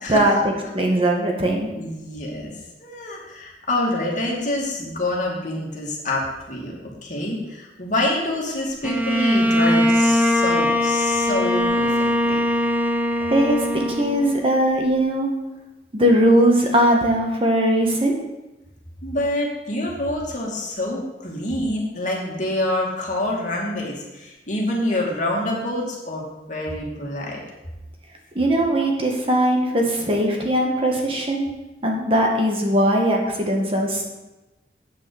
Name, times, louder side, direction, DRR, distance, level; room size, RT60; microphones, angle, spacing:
voice 1, 0.0-0.5 1.7-6.8 7.0-12.4 19.0-27.4, left 1 dB, 45° left, -2 dB, 2.4 m, -26 dB
voice 2, 0.7-1.7 13.3-15.3 15.9-18.1 28.3-31.5 31.8-34.0, right 1 dB, 30° right, 1 dB, 1.5 m, -20 dB
Bowed string instrument, 8.8-14.6, left 1 dB, 10° right, 0.6 m, -21 dB
8.7 x 5.9 x 7.0 m, 1.0 s
head